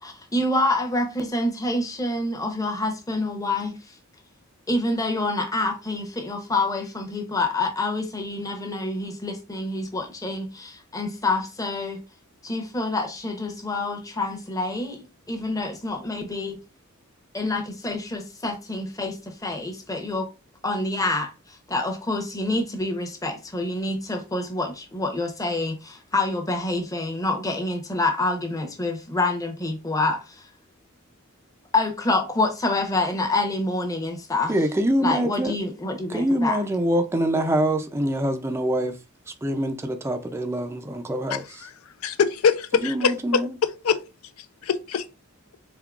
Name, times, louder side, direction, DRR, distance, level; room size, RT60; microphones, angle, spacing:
voice 1, 0.0-3.8 4.7-12.0 12.4-16.6 17.3-20.3 20.6-21.3 21.7-30.5 31.7-34.5 35.0-36.6, left 2 dB, 15° left, 0.7 m, -27 dB
voice 2, 34.5-35.6 36.1-39.0 39.3-41.7 42.7-43.5, right 1 dB, 10° right, 0.3 m, -25 dB
voice 3, 41.3-41.7 42.0-43.4 43.8-44.0 44.6-45.0, left 6 dB, 90° left, 0.5 m, -23 dB
3.7 x 3.6 x 2.3 m
head